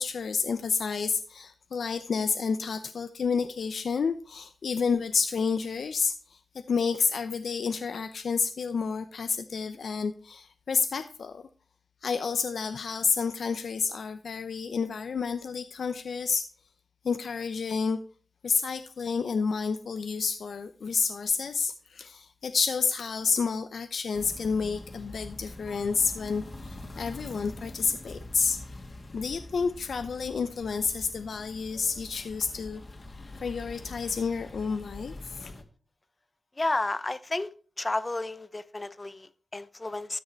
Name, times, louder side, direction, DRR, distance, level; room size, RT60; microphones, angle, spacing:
voice 1, 0.0-6.4 6.7-11.4 12.0-16.5 17.0-18.0 18.4-28.6 29.1-32.8 33.4-35.5, left 5 dB, 75° left, 0.7 m, -30 dB
sound 1, 24.1-35.6, left 2 dB, 45° left, 1.9 m, -44 dB
voice 2, 36.6-37.5 37.8-40.2, left 2 dB, 25° left, 0.8 m, -31 dB
13.0 x 6.5 x 4.5 m
wide cardioid pair, 85°, 0 cm